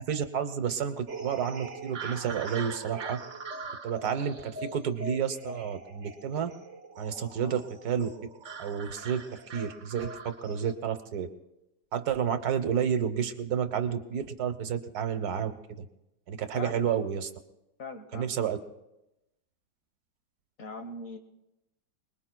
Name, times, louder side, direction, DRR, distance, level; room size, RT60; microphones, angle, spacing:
voice 1, 0.0-3.2 3.8-6.5 7.0-8.1 8.6-9.2 9.5-11.3 11.9-15.9 16.3-17.3 18.1-18.6, right 8 dB, 70° right, 9 dB, 1.4 m, -30 dB
sound 1, 1.1-10.7, right 3 dB, 50° right, 1.4 m, -42 dB
voice 2, 16.5-16.9 17.8-18.3 20.6-21.2, left 3 dB, 55° left, 6 dB, 1.7 m, -40 dB
27.5 x 20.5 x 2.3 m, 0.91 s
omnidirectional pair, 1.8 m